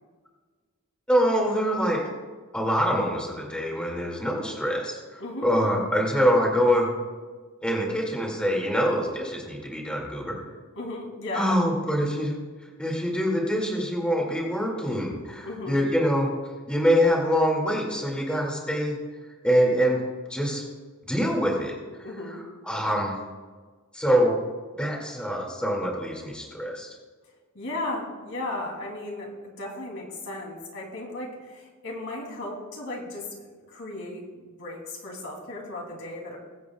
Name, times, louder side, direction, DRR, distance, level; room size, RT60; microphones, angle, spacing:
voice 1, 1.1-2.0 2.5-6.9 7.6-10.4 11.3-12.4 12.8-16.3 16.7-19.0 19.4-20.0 20.3-20.6 21.1-21.7 22.3-23.2 23.9-24.3 24.8-26.9, equal, 5° left, -2 dB, 2.1 m, -25 dB
voice 2, 10.7-11.6 15.4-15.8 22.0-22.4 27.5-36.4, left 2 dB, 65° left, -1 dB, 2.7 m, -35 dB
22.0 x 8.2 x 2.3 m, 1.4 s
head